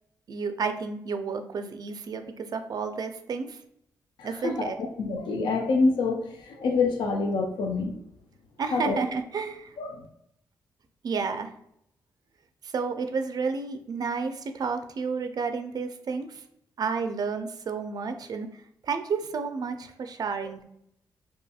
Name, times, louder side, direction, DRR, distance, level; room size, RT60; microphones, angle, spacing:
voice 1, 0.3-3.6 4.2-4.8 8.6-9.7 11.0-11.5 12.6-16.4 16.8-20.6, right 5 dB, 55° right, 8 dB, 0.4 m, -31 dB
voice 2, 4.2-7.9 8.7-9.0 9.8-10.1, left 3 dB, 80° left, 2 dB, 0.3 m, -27 dB
2.7 x 2.6 x 2.3 m, 0.75 s
cardioid pair, 55°, 8 cm